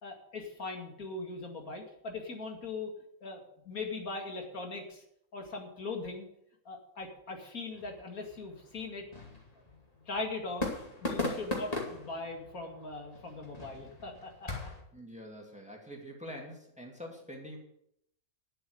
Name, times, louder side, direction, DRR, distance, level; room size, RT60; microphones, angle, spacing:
voice 1, 0.0-2.9 3.2-5.0 5.3-6.3 6.7-9.0 10.1-10.7 11.0-14.5, left 3 dB, 85° left, 2 dB, 2.7 m, -40 dB
sound 1, 7.7-14.8, left 2 dB, 25° left, 2.4 m, -39 dB
voice 2, 14.9-17.6, equal, 5° right, 0 dB, 2.3 m, -45 dB
10.5 x 7.9 x 7.8 m, 0.74 s
omnidirectional pair, 1.5 m